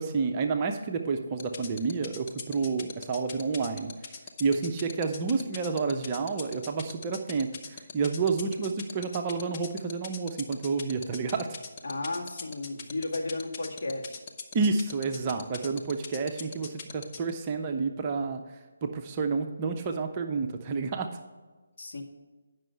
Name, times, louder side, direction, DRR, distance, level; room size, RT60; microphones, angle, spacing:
voice 1, 0.0-3.9 4.4-11.5 14.5-18.4 18.8-21.1, right 4 dB, 25° right, 4 dB, 0.7 m, -29 dB
sound 1, 1.4-17.3, left 5 dB, 30° left, 0.7 m, -40 dB
voice 2, 11.8-14.2 21.8-22.0, left 2 dB, 50° left, -2 dB, 1.8 m, -34 dB
9.2 x 6.2 x 4.6 m, 1.3 s
figure-of-eight pair, 150°, 0 cm